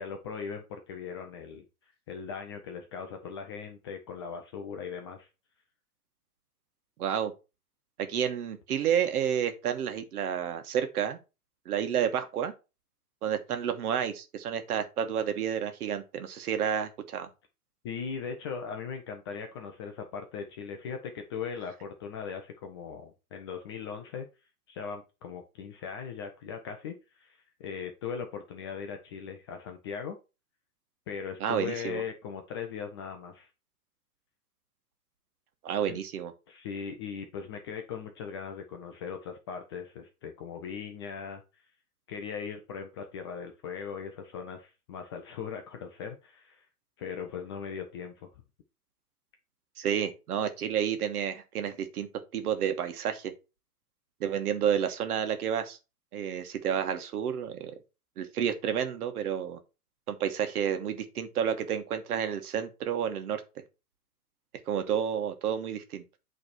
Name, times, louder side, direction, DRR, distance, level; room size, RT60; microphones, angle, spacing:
voice 1, 0.0-1.6 2.1-5.3 17.8-24.3 24.7-30.2 31.1-33.5 35.9-36.0 36.5-41.4 42.1-46.6 47.0-48.3, left 6 dB, 20° left, 0.3 m, -39 dB
voice 2, 7.0-7.3 8.0-11.2 11.6-12.5 13.2-17.3 31.4-32.0 35.6-36.3 49.8-52.1 52.3-53.3 54.2-55.8 56.1-57.7 58.2-59.6 60.1-63.4 64.7-66.0, right 8 dB, 70° right, 1.3 m, -30 dB
8.3 x 3.3 x 4.3 m
hypercardioid pair, 120°, 47 cm